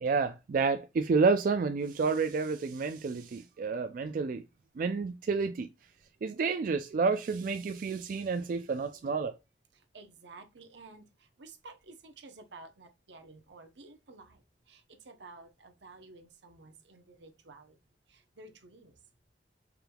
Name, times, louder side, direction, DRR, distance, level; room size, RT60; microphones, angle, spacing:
voice 1, 0.0-4.4 4.8-5.7 6.2-9.3, right 4 dB, 50° right, 0.3 m, -29 dB
voice 2, 9.7-17.8 18.1-19.0, right 3 dB, 80° right, 0.8 m, -52 dB
4.8 x 3.4 x 2.2 m
head